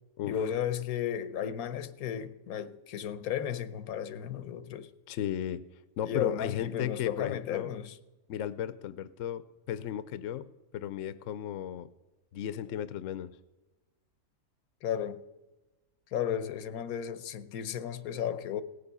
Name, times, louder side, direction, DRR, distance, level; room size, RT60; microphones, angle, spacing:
voice 1, 0.2-4.9 6.0-8.0 14.8-15.2 16.1-18.6, left 9 dB, 85° left, 1.2 m, -34 dB
voice 2, 5.1-5.6 6.0-7.7 8.3-11.9 12.3-13.3, left 10 dB, 70° left, 0.9 m, -35 dB
18.0 x 6.9 x 6.7 m
omnidirectional pair, 1.5 m